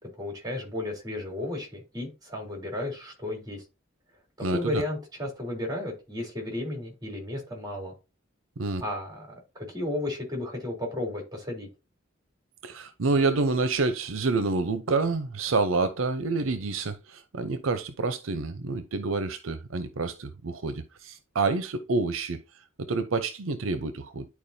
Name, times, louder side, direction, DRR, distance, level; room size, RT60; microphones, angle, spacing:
voice 1, 0.0-3.6 4.5-7.9 8.8-9.3 9.6-11.7, left 1 dB, 20° right, 3.5 m, -33 dB
voice 2, 4.4-4.8 8.6-8.8 12.6-22.4 22.8-24.3, right 3 dB, 75° right, 0.7 m, -28 dB
10.5 x 4.6 x 2.7 m
head